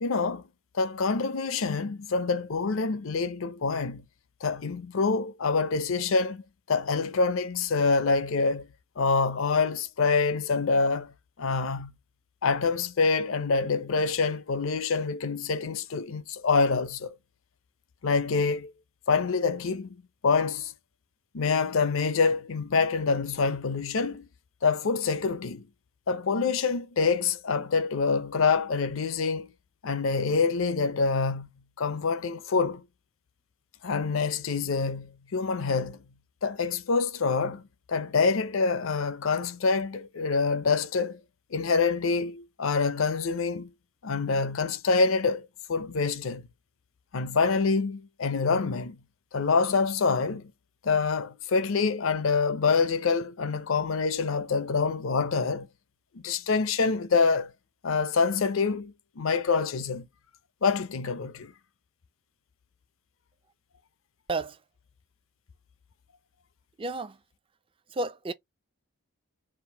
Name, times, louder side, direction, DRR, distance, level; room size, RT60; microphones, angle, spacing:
voice 1, 0.0-0.4 0.7-4.0 4.4-6.4 6.7-8.7 9.0-11.1 11.4-11.9 12.4-17.1 18.0-18.7 19.1-20.0 20.2-20.7 21.3-24.3 24.6-25.7 26.1-29.5 29.8-31.5 31.8-32.8 33.8-36.0 36.4-37.6 37.9-41.2 41.5-43.7 44.0-46.5 47.1-49.0 49.3-50.5 50.8-55.7 56.2-57.5 57.8-60.1 60.6-61.5, left 4 dB, 65° left, 0.5 m, -26 dB
voice 2, 66.8-67.2 67.9-68.3, right 2 dB, 25° right, 0.4 m, -31 dB
3.6 x 2.5 x 4.5 m
head